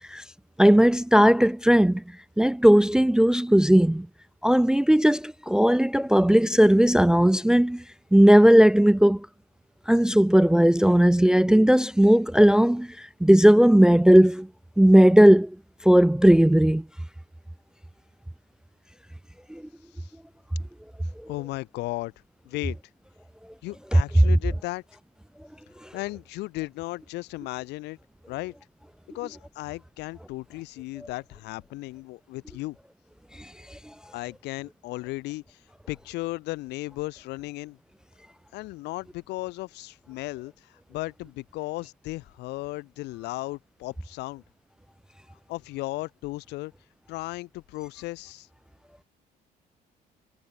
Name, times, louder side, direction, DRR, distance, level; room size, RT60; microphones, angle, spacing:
voice 1, 0.6-2.0 2.4-4.1 4.4-7.8 8.1-9.3 9.9-12.9 13.2-14.5 14.8-15.5 15.8-16.8 19.5-19.6, equal, 5° right, 0.3 m, -17 dB
voice 2, 21.3-22.1 22.4-22.8 23.6-24.8 25.9-28.0 28.3-28.5 29.1-32.8 34.1-35.6 35.9-37.8 38.5-44.4 45.5-46.7 47.1-48.5, left 20 dB, 90° left, 2.7 m, -35 dB
cardioid pair, 110°, 17 cm